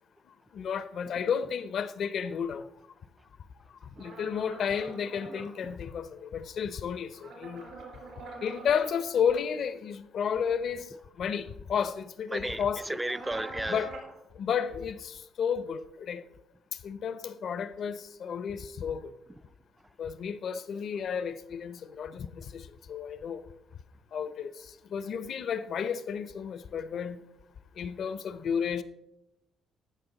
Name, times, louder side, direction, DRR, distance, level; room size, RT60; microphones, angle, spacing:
voice 1, 0.5-2.7 4.0-7.6 8.4-10.9 11.2-13.0 13.7-13.9 14.4-16.2 16.8-19.1 20.0-23.4 24.1-27.2 27.8-28.8, left 7 dB, 65° left, 0.6 m, -32 dB
sound 1, 4.0-5.5 7.1-8.9 13.0-14.1, right 3 dB, 75° right, 3.7 m, -44 dB
voice 2, 12.3-13.8, right 1 dB, 10° right, 0.3 m, -34 dB
15.0 x 5.6 x 4.0 m
cardioid pair, 90°, 0 cm